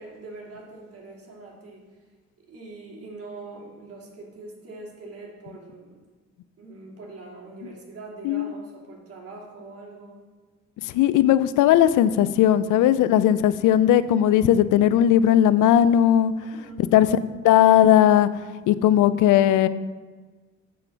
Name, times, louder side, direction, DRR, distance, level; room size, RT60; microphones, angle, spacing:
voice 1, 0.0-1.9 2.5-6.0 6.6-10.2 16.4-16.9, right 3 dB, 50° right, -3 dB, 2.8 m, -42 dB
voice 2, 10.9-16.3 16.9-17.2 17.4-18.3 18.7-19.7, left 11 dB, 85° left, 15 dB, 0.5 m, -17 dB
10.0 x 4.5 x 7.0 m, 1.4 s
cardioid pair, 90°, 30 cm